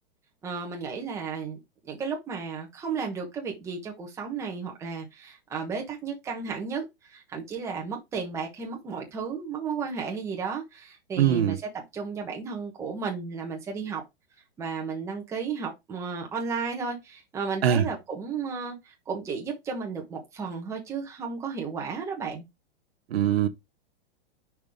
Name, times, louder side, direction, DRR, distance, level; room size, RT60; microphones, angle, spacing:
voice 1, 0.4-1.6 1.8-14.0 14.6-18.8 19.1-22.4, right 5 dB, 10° right, 1.2 m, -33 dB
voice 2, 11.2-11.6 17.6-17.9 23.1-23.5, right 10 dB, 65° right, 1.0 m, -22 dB
6.0 x 5.2 x 3.6 m
supercardioid pair, 175°, 33 cm